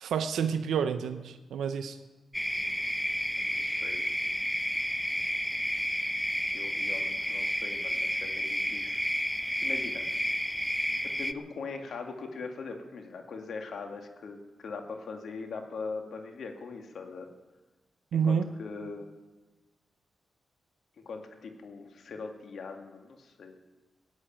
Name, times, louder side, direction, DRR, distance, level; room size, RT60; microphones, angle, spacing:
voice 1, 0.0-2.0 18.1-18.5, right 7 dB, 85° right, 10 dB, 0.8 m, -29 dB
sound 1, 2.3-11.3, equal, ahead, 0.7 m, -31 dB
voice 2, 3.4-4.1 6.5-9.0 9.6-10.1 11.0-17.3 18.1-19.1 21.1-23.6, left 4 dB, 70° left, 4 dB, 2.1 m, -41 dB
16.0 x 9.6 x 8.9 m, 1.2 s
cardioid pair, 60°, 0 cm